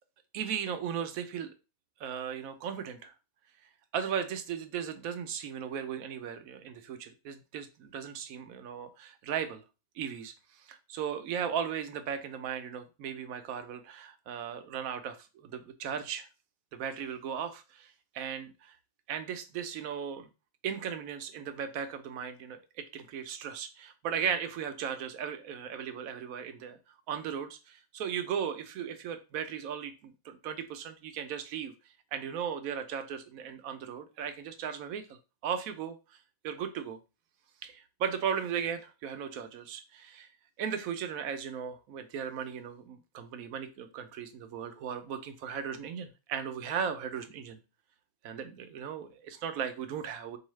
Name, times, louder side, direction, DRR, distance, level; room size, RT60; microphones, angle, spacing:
voice 1, 0.3-1.5 2.0-3.1 3.9-9.6 9.9-16.3 16.7-18.8 19.1-20.3 20.6-26.8 27.1-31.7 32.1-35.1 35.4-36.2 36.4-37.0 37.6-40.3 40.6-47.6 48.2-50.4, right 8 dB, 80° right, 9 dB, 1.1 m, -37 dB
4.7 x 2.7 x 3.1 m, 0.30 s
omnidirectional pair, 1.5 m